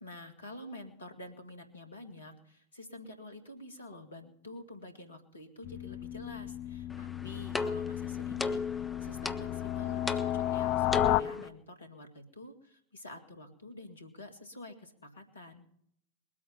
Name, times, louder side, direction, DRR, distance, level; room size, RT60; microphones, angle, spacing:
voice 1, 0.0-15.6, left 1 dB, 75° left, 7 dB, 2.2 m, -48 dB
sound 1, 5.6-11.2, left 14 dB, 40° left, 0.5 m, -33 dB
sound 2, 6.9-11.5, left 3 dB, 10° left, 0.9 m, -37 dB
21.0 x 8.7 x 6.0 m, 0.71 s
figure-of-eight pair, 90°, 0 cm